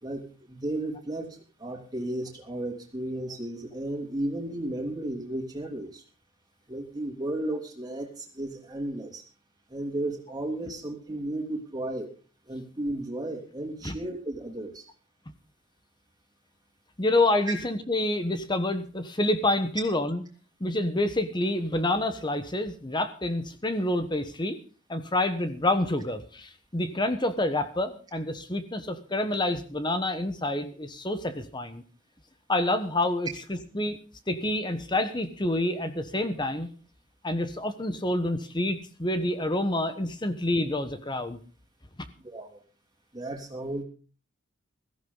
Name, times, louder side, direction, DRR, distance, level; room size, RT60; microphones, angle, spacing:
voice 1, 0.0-6.0 6.7-9.2 9.7-12.1 12.5-14.8 17.5-17.6 42.2-42.6 43.1-43.8, right 1 dB, 20° right, 1 dB, 3.1 m, -34 dB
voice 2, 17.0-20.2 20.6-24.6 24.9-31.8 32.5-34.0 34.3-36.7 37.2-41.4, left 1 dB, 20° left, 10 dB, 1.1 m, -28 dB
16.5 x 14.5 x 4.0 m, 0.38 s
head